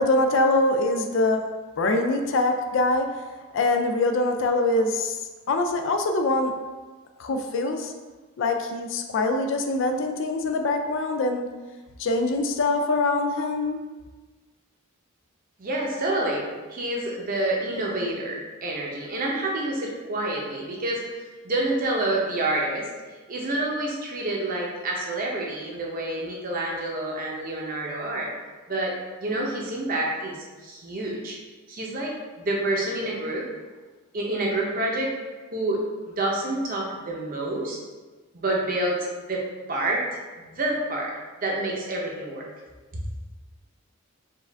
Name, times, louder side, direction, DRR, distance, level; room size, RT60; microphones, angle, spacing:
voice 1, 0.0-1.4 1.8-3.1 3.5-5.2 5.5-6.5 7.2-7.9 8.4-11.5 12.0-13.8, left 2 dB, 55° left, 5 dB, 0.4 m, -23 dB
voice 2, 15.6-16.4 16.7-21.0 21.4-22.9 23.3-28.3 28.7-28.9 29.2-31.4 31.7-33.5 34.1-35.1 35.5-37.8 38.3-40.0 40.4-41.1 41.4-42.4 42.9-43.0, right 2 dB, 40° right, -2 dB, 0.7 m, -28 dB
4.7 x 2.5 x 3.3 m, 1.3 s
head